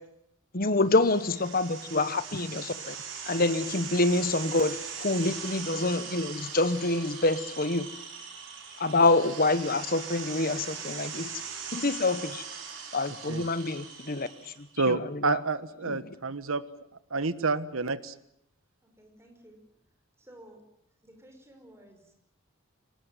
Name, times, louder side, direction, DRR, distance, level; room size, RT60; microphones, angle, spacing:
voice 1, 0.5-2.9 3.2-7.9 8.8-11.3 11.7-12.4 12.9-15.4 15.9-16.1, left 2 dB, 45° left, 1.2 m, -27 dB
sound 1, 0.9-14.6, right 6 dB, 55° right, 5.8 m, -40 dB
voice 2, 14.8-16.6 17.1-18.1, right 3 dB, 75° right, 1.3 m, -29 dB
voice 3, 18.8-19.6 20.2-20.6 21.0-22.1, right 1 dB, 10° right, 5.3 m, -53 dB
23.5 x 19.5 x 9.2 m
head